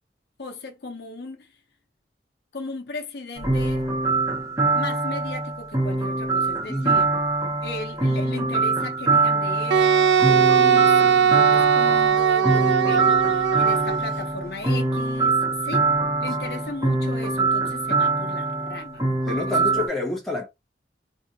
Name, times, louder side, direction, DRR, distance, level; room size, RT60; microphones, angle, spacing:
voice 1, 0.4-1.5 2.5-3.9 4.7-7.1 7.6-15.9 16.2-19.0 19.5-19.8, left 3 dB, 65° left, 0.6 m, -36 dB
sound 1, 3.4-19.9, right 3 dB, 20° right, 0.6 m, -24 dB
voice 2, 6.7-7.1 16.4-16.6 19.3-20.5, left 2 dB, ahead, 1.1 m, -28 dB
Wind instrument woodwind instrument, 9.7-14.0, right 7 dB, 85° right, 0.3 m, -19 dB
2.5 x 2.4 x 2.6 m
head